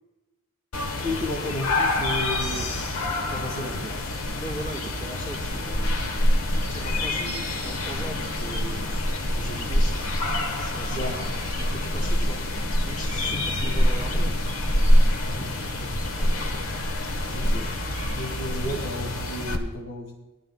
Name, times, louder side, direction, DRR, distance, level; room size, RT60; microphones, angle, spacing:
sound 1, 0.7-19.6, left 1 dB, 85° left, 1.3 m, -26 dB
voice 1, 1.0-2.7 3.2-4.4 10.9-11.6 15.2-15.5 17.3-17.7 18.1-20.2, left 1 dB, 70° left, -1 dB, 1.9 m, -33 dB
voice 2, 4.4-8.9 9.3-10.2 10.6-11.2 11.6-14.3 15.6-16.4, right 1 dB, 40° left, -1 dB, 3.2 m, -39 dB
19.5 x 11.5 x 2.3 m, 1.1 s
head